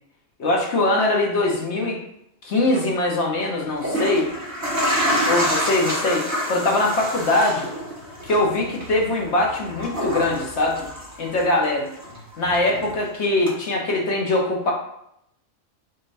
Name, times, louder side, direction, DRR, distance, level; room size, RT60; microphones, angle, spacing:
voice 1, 0.4-2.0 2.4-4.3 5.2-7.7 8.2-10.9 11.2-11.9 12.4-14.7, left 2 dB, 60° left, -1 dB, 1.2 m, -22 dB
sound 1, 2.6-2.8 3.6-11.7 12.0-13.0 13.5-13.6, equal, 15° right, 1.1 m, -27 dB
3.9 x 3.8 x 2.6 m, 0.76 s
omnidirectional pair, 1.4 m